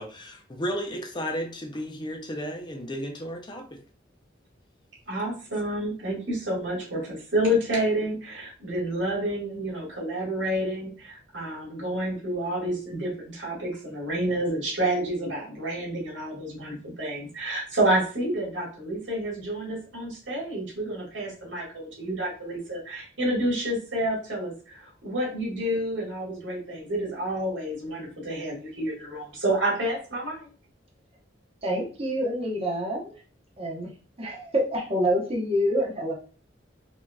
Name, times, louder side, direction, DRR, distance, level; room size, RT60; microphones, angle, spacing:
voice 1, 0.0-3.8, equal, 25° left, 3 dB, 0.5 m, -33 dB
voice 2, 5.1-30.5, right 1 dB, 85° right, -3 dB, 1.8 m, -29 dB
voice 3, 31.6-33.1 33.6-33.9 34.2-36.1, equal, 30° right, -3 dB, 0.9 m, -27 dB
4.4 x 2.8 x 2.3 m, 0.38 s
head